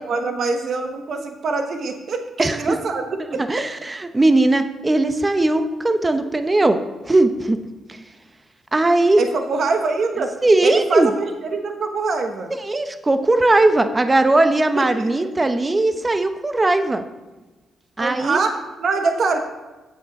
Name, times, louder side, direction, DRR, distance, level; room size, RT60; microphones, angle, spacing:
voice 1, 0.0-3.0 3.3-3.4 9.2-10.3 10.6-12.5 14.7-15.1 18.0-19.4, right 4 dB, 60° right, 6 dB, 1.1 m, -24 dB
voice 2, 2.4-2.8 3.2-6.8 7.1-7.6 8.7-9.2 10.4-11.1 12.6-17.0 18.0-18.4, right 2 dB, 25° right, 8 dB, 0.9 m, -18 dB
8.9 x 7.5 x 5.3 m, 1.2 s
supercardioid pair, 65°, 0 cm